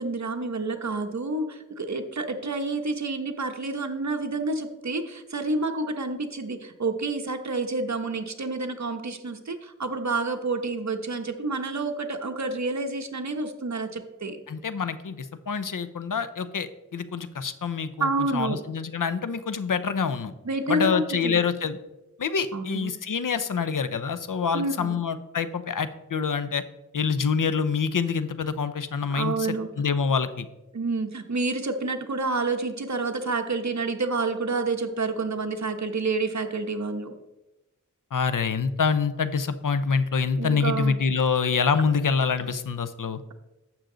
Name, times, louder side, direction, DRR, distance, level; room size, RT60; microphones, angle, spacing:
voice 1, 0.0-14.4 18.0-18.6 20.4-21.4 22.5-22.9 24.5-25.0 29.1-29.7 30.7-37.1 40.4-41.0, right 3 dB, 60° right, 5 dB, 1.1 m, -29 dB
voice 2, 14.5-20.3 20.7-21.8 22.2-26.6 26.9-29.5 29.8-30.5 38.1-43.2, left 5 dB, 90° left, 12 dB, 0.7 m, -26 dB
11.5 x 7.6 x 3.9 m, 1.0 s
wide cardioid pair, 75°, 31 cm